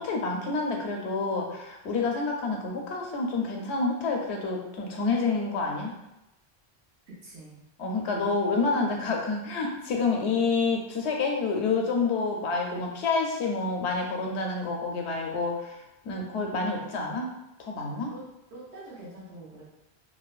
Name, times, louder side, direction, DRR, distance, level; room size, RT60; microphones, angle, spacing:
voice 1, 0.0-5.9 7.8-17.3 17.6-18.1, left 4 dB, 90° left, 1 dB, 0.9 m, -28 dB
voice 2, 7.2-7.6 18.1-18.2 18.5-19.6, right 2 dB, 90° right, -7 dB, 1.2 m, -45 dB
2.9 x 2.2 x 2.3 m, 0.92 s
omnidirectional pair, 1.1 m